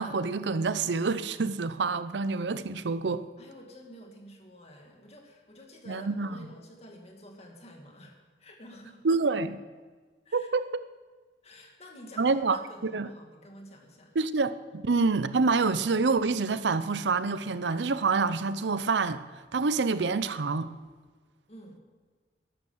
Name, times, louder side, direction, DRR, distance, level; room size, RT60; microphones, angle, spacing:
voice 1, 0.0-3.2 5.9-6.4 9.0-9.6 10.3-10.7 12.2-12.6 12.8-13.1 14.1-19.2 19.5-20.7, right 4 dB, 85° right, 0.6 m, -27 dB
voice 2, 3.4-9.0 10.3-10.5 11.4-14.2 21.5-21.8, equal, 35° left, 2.3 m, -50 dB
12.5 x 11.0 x 7.2 m
head